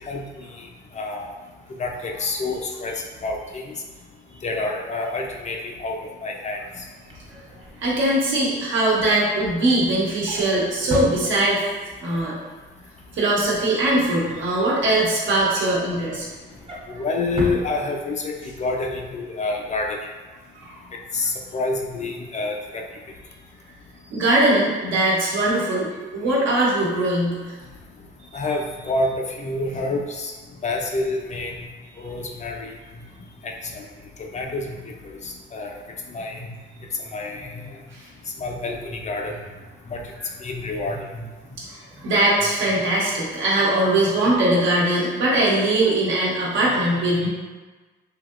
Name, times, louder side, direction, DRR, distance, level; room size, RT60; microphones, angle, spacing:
voice 1, 0.0-0.7 0.9-1.3 1.8-3.7 4.4-6.8 16.9-20.0 21.1-22.8 28.3-30.3 30.6-31.7 32.0-32.8 33.4-33.9 34.2-35.8 36.1-36.4 37.0-37.6 38.4-39.4 39.9-40.0 40.4-41.1, left 2 dB, 35° left, 1 dB, 0.4 m, -28 dB
Drawer open or close, 6.9-11.8 12.2-12.5 12.8-15.0 15.4-18.4 18.8-19.0 19.2-19.3, equal, 25° right, 0.7 m, -37 dB
voice 2, 7.8-11.6 12.0-12.4 13.1-16.2 20.6-20.8 24.1-27.5 37.5-37.6 37.9-38.0 41.6-47.3, right 1 dB, 75° right, -5 dB, 1.0 m, -21 dB
3.4 x 2.8 x 2.4 m, 1.3 s
cardioid pair, 90°, 20 cm